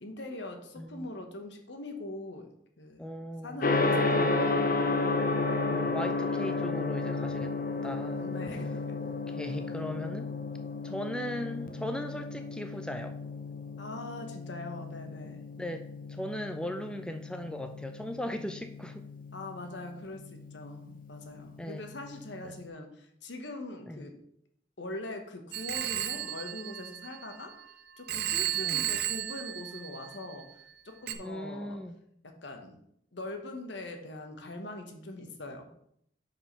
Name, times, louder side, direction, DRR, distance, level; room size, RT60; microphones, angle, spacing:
voice 1, 0.0-2.5 2.8-3.1 3.4-4.6 8.2-9.0 13.8-15.4 19.3-24.2 24.8-27.6 28.0-30.5 30.8-31.8 32.2-32.8 33.1-35.7, left 2 dB, 70° left, 5 dB, 1.1 m, -42 dB
voice 2, 0.8-1.1 3.0-3.6 4.2-4.5 5.7-7.5 7.8-8.3 9.0-10.3 10.8-13.2 15.6-19.0 21.6-21.8 22.4-22.5 23.9-24.0 28.5-28.9 31.2-32.0, equal, 5° left, 5 dB, 0.4 m, -38 dB
Gong, 3.6-22.6, left 3 dB, 50° left, 0.7 m, -33 dB
Telephone, 25.5-27.6 28.1-30.4 31.1-31.2, right 12 dB, 60° right, 0.6 m, -34 dB
5.3 x 4.9 x 5.5 m, 0.71 s
head